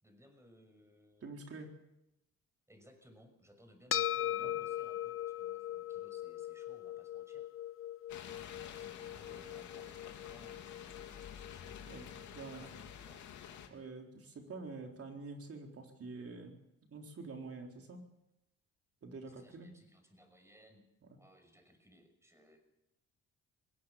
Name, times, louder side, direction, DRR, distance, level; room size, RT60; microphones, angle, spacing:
voice 1, 0.0-1.3 2.7-7.5 8.7-11.8 12.2-13.2 19.2-20.8 21.2-22.6, equal, 10° right, 6 dB, 6.2 m, -62 dB
voice 2, 1.2-1.7 4.4-4.5 11.9-12.7 13.7-16.5 16.9-18.0 19.0-19.7, right 3 dB, 50° right, 2 dB, 4.1 m, -47 dB
sound 1, 3.9-12.5, left 12 dB, 45° left, 1.0 m, -40 dB
sound 2, 8.1-13.7, left 8 dB, 75° left, 2.8 m, -50 dB
21.5 x 18.5 x 7.3 m, 0.88 s
cardioid pair, 90°, 30 cm